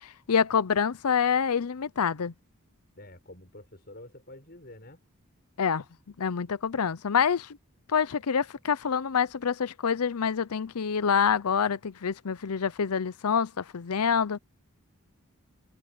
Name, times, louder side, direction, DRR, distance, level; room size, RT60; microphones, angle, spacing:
voice 1, 0.0-2.3 5.6-5.8 6.2-7.6 7.9-14.4, left 6 dB, 85° left, 0.6 m, -26 dB
voice 2, 3.0-5.0, left 1 dB, 45° left, 6.1 m, -48 dB
head